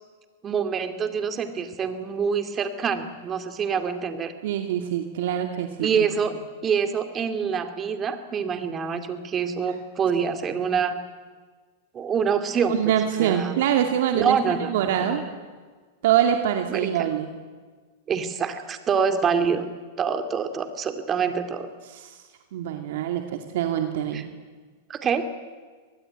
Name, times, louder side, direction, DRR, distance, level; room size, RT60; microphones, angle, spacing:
voice 1, 0.4-4.3 5.8-11.0 11.9-12.9 13.2-13.6 14.1-15.1 16.7-16.9 18.1-19.6 20.0-21.7 24.1-24.2 24.9-25.3, right 6 dB, 25° right, 9 dB, 2.6 m, -26 dB
voice 2, 4.4-6.1 12.7-15.2 16.0-17.3 21.9-22.2 22.5-24.2, right 10 dB, 70° right, 5 dB, 2.2 m, -24 dB
24.5 x 19.5 x 9.0 m, 1.4 s
hypercardioid pair, 120°, 0 cm